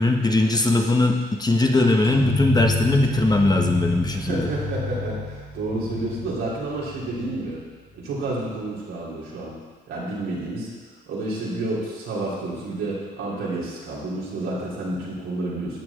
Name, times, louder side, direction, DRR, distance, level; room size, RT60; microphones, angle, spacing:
voice 1, 0.0-4.5, left 2 dB, 20° left, 2 dB, 1.2 m, -20 dB
sound 1, 2.0-7.6, left 2 dB, 85° left, 2.6 m, -29 dB
voice 2, 4.1-7.6 7.9-9.5 9.9-10.7 11.1-15.8, right 2 dB, 85° right, -7 dB, 3.7 m, -30 dB
13.0 x 8.2 x 3.8 m, 1.4 s
cardioid pair, 90°, 20 cm